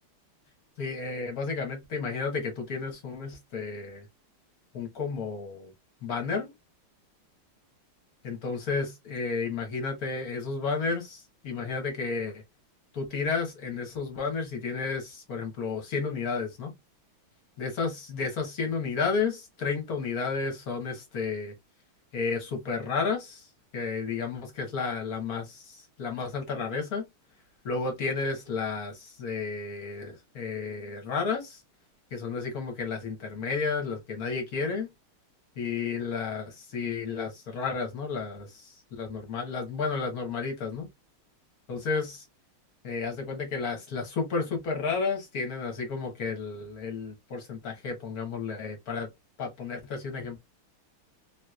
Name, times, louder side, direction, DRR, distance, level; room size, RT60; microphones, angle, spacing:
voice 1, 0.8-4.1 4.7-5.7 6.0-6.5 8.2-12.4 12.9-16.7 17.6-21.5 22.1-23.5 23.7-27.0 27.6-31.6 32.1-34.9 35.6-40.9 41.7-42.2 42.8-49.1 49.4-50.4, left 4 dB, 55° left, 1.2 m, -32 dB
3.1 x 2.9 x 2.3 m
omnidirectional pair, 2.3 m